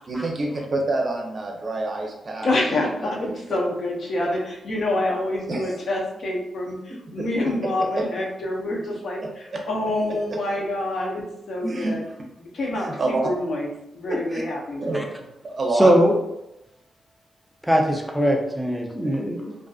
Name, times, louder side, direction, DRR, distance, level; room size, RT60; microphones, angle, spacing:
voice 1, 0.1-2.5 3.0-3.4 4.2-4.3 5.1-5.2 5.5-5.8 7.1-7.2 7.9-8.1 9.2-9.3 11.6-11.9 12.7-13.2 14.1-14.4 14.8-15.0 15.4-16.0, right 2 dB, 45° right, 0 dB, 0.6 m, -27 dB
voice 2, 2.4-12.0 12.4-15.1, left 1 dB, 60° left, -1 dB, 0.7 m, -27 dB
voice 3, 15.7-16.1 17.6-19.5, equal, ahead, 2 dB, 0.4 m, -20 dB
2.5 x 2.3 x 2.4 m, 0.89 s
cardioid pair, 65°, 0 cm